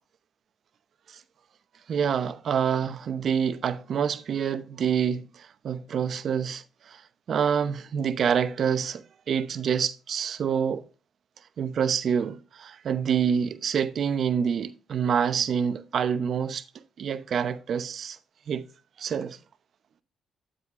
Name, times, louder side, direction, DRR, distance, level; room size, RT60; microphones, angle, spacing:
voice 1, 1.9-7.0 7.3-10.8 11.6-16.6 17.0-18.2 18.5-18.7 19.0-19.4, right 7 dB, 60° right, 0.8 m, -27 dB
9.7 x 7.7 x 2.5 m
cardioid pair, 90°, 0 cm